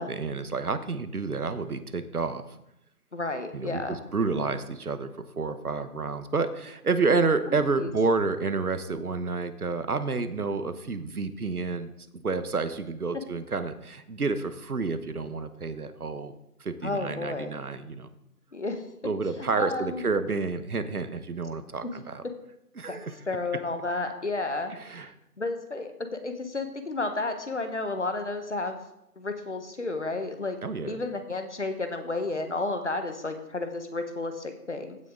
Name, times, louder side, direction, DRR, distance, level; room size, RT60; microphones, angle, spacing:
voice 1, 0.0-2.4 3.5-11.9 12.2-16.3 16.6-18.1 19.0-22.2 22.8-23.2 24.7-25.1 30.6-31.0, right 4 dB, 65° right, 11 dB, 1.1 m, -29 dB
voice 2, 3.1-4.0 7.5-7.9 16.8-17.5 18.5-18.8 19.4-20.0 21.8-21.9 22.9-23.0 23.3-24.7 25.4-28.8 29.2-30.6 30.9-35.0, left 2 dB, 50° left, 7 dB, 1.2 m, -32 dB
15.5 x 6.6 x 3.7 m, 0.84 s
figure-of-eight pair, 175°, 47 cm